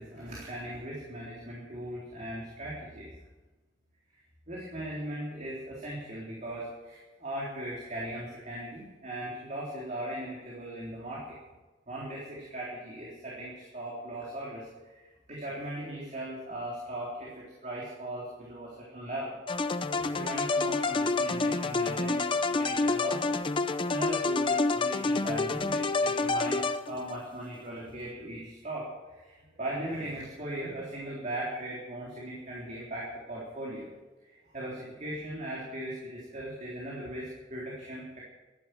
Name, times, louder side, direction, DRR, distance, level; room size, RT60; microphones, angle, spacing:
voice 1, 0.0-3.1 4.5-11.4 11.9-15.0 15.3-23.4 23.9-33.9 34.2-38.2, right 1 dB, 40° right, -5 dB, 3.8 m, -38 dB
sound 1, 19.5-27.2, left 3 dB, 30° left, 0.6 m, -28 dB
14.0 x 11.5 x 7.8 m, 1.2 s
head